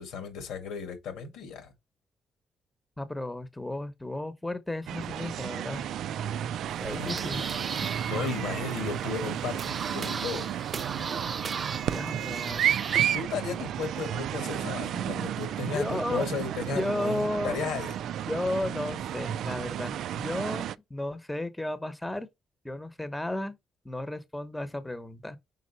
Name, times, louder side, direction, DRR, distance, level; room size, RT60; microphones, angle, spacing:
voice 1, 0.0-1.7 6.8-7.5 8.0-10.5 11.0-11.1 13.1-17.9, left 5 dB, 90° left, 2.0 m, -35 dB
voice 2, 3.0-5.8 6.8-7.6 11.9-12.8 15.6-16.3 16.7-17.6 18.3-22.3 22.6-23.6 23.8-25.4, left 1 dB, 10° left, 1.0 m, -34 dB
sound 1, 4.9-20.7, right 10 dB, 80° right, 0.3 m, -32 dB
sound 2, 6.7-13.1, right 5 dB, 45° right, 0.7 m, -37 dB
5.4 x 4.5 x 4.1 m
supercardioid pair, 70°, 0 cm